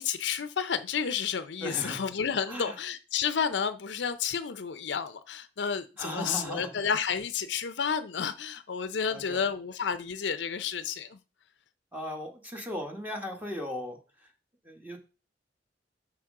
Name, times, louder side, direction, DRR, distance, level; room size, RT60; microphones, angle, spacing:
voice 1, 0.0-11.2, left 7 dB, 85° left, 0.5 m, -31 dB
voice 2, 1.6-2.0 2.5-2.8 6.0-6.7 9.1-9.5 11.9-14.3 14.6-15.0, equal, 10° right, 1.2 m, -37 dB
6.0 x 6.0 x 3.7 m
head